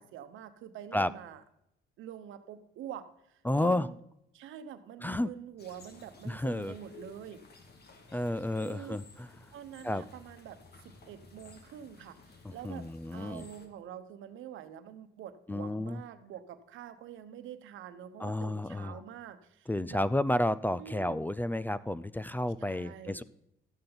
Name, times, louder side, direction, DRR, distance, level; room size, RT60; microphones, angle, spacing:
voice 1, 0.0-1.4 2.0-3.9 4.3-7.4 8.6-9.0 9.5-20.1 20.8-21.2 22.6-23.2, right 9 dB, 85° right, 10 dB, 1.0 m, -46 dB
voice 2, 3.4-3.9 5.0-5.3 6.2-6.7 8.1-9.3 9.8-10.0 12.4-13.4 15.5-16.0 18.2-19.0 19.7-23.2, left 1 dB, 10° left, 16 dB, 0.4 m, -31 dB
sound 1, 5.6-13.7, left 4 dB, 55° left, 2.0 m, -55 dB
13.0 x 8.7 x 3.9 m, 0.81 s
cardioid pair, 90°, 20 cm